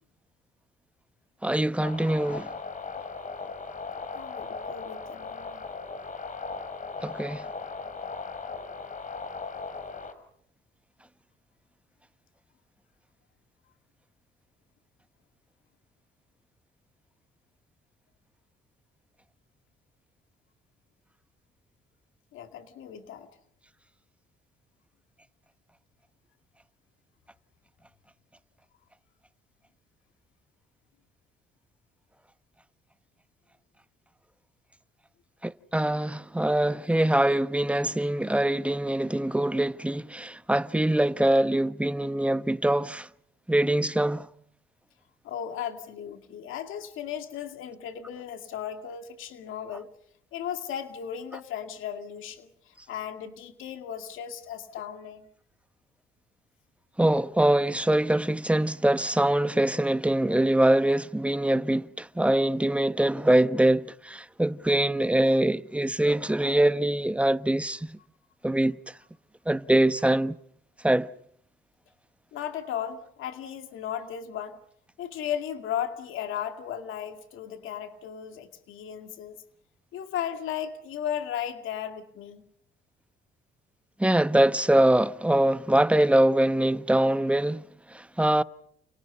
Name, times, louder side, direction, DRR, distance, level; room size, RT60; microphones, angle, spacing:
voice 1, 1.4-2.5 7.0-7.5 35.4-43.1 43.5-44.3 57.0-68.0 68.4-68.8 69.5-70.3 70.8-71.1 84.0-88.4, right 1 dB, 5° right, 1.0 m, -23 dB
sound 1, 1.8-10.1, left 4 dB, 40° left, 4.6 m, -38 dB
voice 2, 4.2-5.6 22.3-23.3 45.2-49.9 50.3-55.3 72.3-74.6 75.0-79.4 79.9-82.4, left 9 dB, 85° left, 2.3 m, -36 dB
30.0 x 29.5 x 5.6 m
cardioid pair, 90°, 20 cm